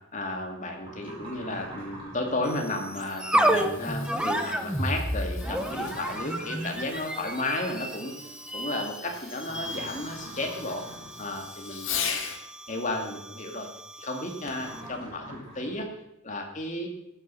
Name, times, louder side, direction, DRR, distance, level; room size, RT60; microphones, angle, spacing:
voice 1, 0.1-8.1 8.5-10.8 11.2-12.2 12.7-13.7 14.0-15.9 16.2-16.9, left 2 dB, 35° left, 2 dB, 2.1 m, -33 dB
sound 1, 0.9-2.6 5.4-7.0 9.4-11.4 14.5-15.8, equal, 25° right, 5.2 m, -44 dB
sound 2, 2.4-14.9, right 1 dB, 5° right, 0.8 m, -32 dB
Fireworks, 3.2-12.4 14.5-14.8 15.5-15.6, left 7 dB, 60° left, 1.7 m, -40 dB
15.0 x 9.2 x 5.6 m, 0.86 s
head